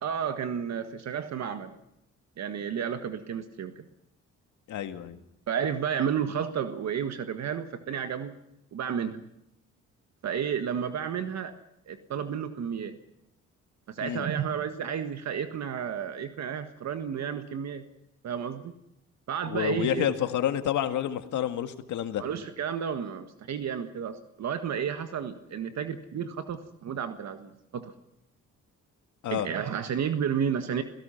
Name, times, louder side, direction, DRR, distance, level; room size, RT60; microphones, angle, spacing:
voice 1, 0.0-1.8 2.4-3.8 5.5-8.4 8.7-9.2 10.2-11.5 11.9-12.9 13.9-17.8 18.2-18.7 19.3-20.1 22.2-27.8 29.3-30.8, right 8 dB, 60° right, 8 dB, 1.6 m, -32 dB
voice 2, 4.7-5.2 14.0-14.3 19.5-22.3 29.2-29.5, left 10 dB, 75° left, 8 dB, 1.9 m, -29 dB
29.0 x 17.0 x 5.8 m, 0.79 s
cardioid pair, 90°, 30 cm